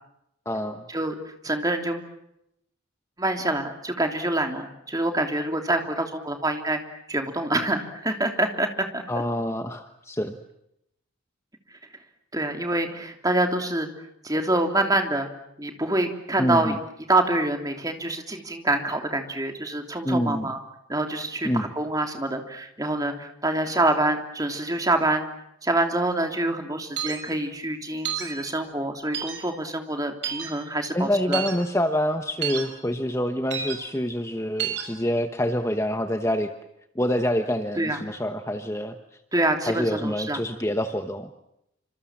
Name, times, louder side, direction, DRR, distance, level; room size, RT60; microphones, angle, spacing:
voice 1, 0.4-0.8 9.1-10.4 16.4-16.8 20.0-20.5 21.4-21.7 30.9-36.5 36.9-39.0 39.7-41.3, equal, 15° left, 7 dB, 1.1 m, -26 dB
voice 2, 1.4-2.1 3.2-8.7 8.9-9.0 12.3-13.9 14.2-15.3 15.6-16.7 17.1-20.6 20.9-25.2 25.6-31.4 37.8-38.0 39.3-40.4, right 2 dB, 15° right, 5 dB, 3.1 m, -26 dB
sound 1, 27.0-27.2 28.0-28.3 29.1-29.4 30.2-30.5 31.3-31.5 32.4-32.6 33.5-33.7 34.6-34.8, right 8 dB, 60° right, 6.2 m, -29 dB
28.5 x 26.5 x 7.4 m, 0.81 s
head